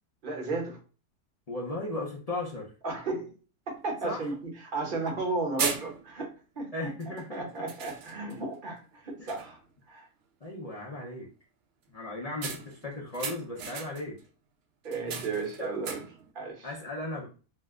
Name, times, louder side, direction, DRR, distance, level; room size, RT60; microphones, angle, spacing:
voice 1, 0.2-0.8 2.8-3.3 3.7-6.3 6.6-6.9 7.3-9.6 9.9-10.1 14.8-16.0 16.3-16.7, right 3 dB, 40° right, 0 dB, 0.9 m, -34 dB
voice 2, 1.5-2.7 4.0-4.3 6.7-7.6 9.2-9.3 10.4-11.3 11.9-14.2 15.6-15.9 16.6-17.3, left 2 dB, 70° left, -3 dB, 0.3 m, -36 dB
sound 1, 3.7-3.8 4.2-4.3 5.1-5.3 5.6-6.3 7.0-7.2 7.7-8.5 8.9-9.0 9.3-9.7 12.4-14.2 14.8-16.3, right 6 dB, 85° right, 0.5 m, -37 dB
2.7 x 2.1 x 3.5 m, 0.36 s
omnidirectional pair, 1.6 m